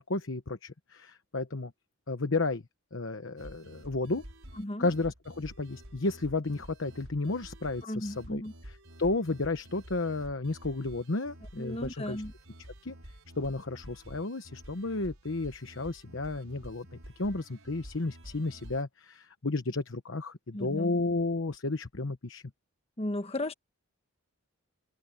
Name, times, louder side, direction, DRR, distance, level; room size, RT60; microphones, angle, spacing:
voice 1, 0.0-1.7 2.1-2.6 2.9-4.2 4.8-12.2 12.8-12.9 13.4-16.9 17.2-22.4, left 3 dB, 65° left, 1.1 m, -32 dB
sound 1, 3.4-18.8, equal, 85° right, 5.8 m, -50 dB
voice 2, 4.5-4.9 7.8-8.5 11.6-12.3 20.5-21.0 23.0-23.5, left 1 dB, 30° left, 1.4 m, -35 dB
head